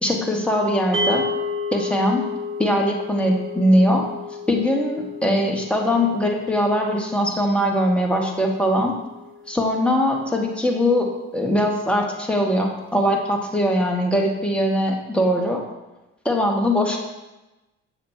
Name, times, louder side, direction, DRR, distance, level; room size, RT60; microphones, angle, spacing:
voice 1, 0.0-1.2 1.7-2.2 2.6-4.0 4.5-8.9 9.5-15.6 16.2-17.0, equal, 5° left, 0 dB, 1.5 m, -21 dB
sound 1, 0.9-11.2, left 3 dB, 35° right, 0.8 m, -32 dB
7.1 x 3.1 x 5.9 m, 1.0 s
hypercardioid pair, 55°, 33 cm